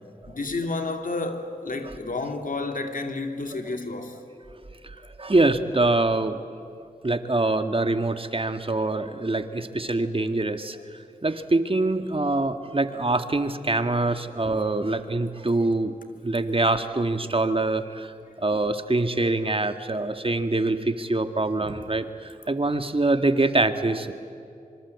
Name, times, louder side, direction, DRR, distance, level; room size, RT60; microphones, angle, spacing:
voice 1, 0.3-4.2, left 3 dB, 65° left, 2.7 m, -30 dB
voice 2, 4.8-6.4 7.0-10.8 11.2-15.9 16.2-18.1 18.4-24.1, right 2 dB, 40° right, 1.8 m, -24 dB
25.5 x 25.0 x 8.3 m
cardioid pair, 40°, 15 cm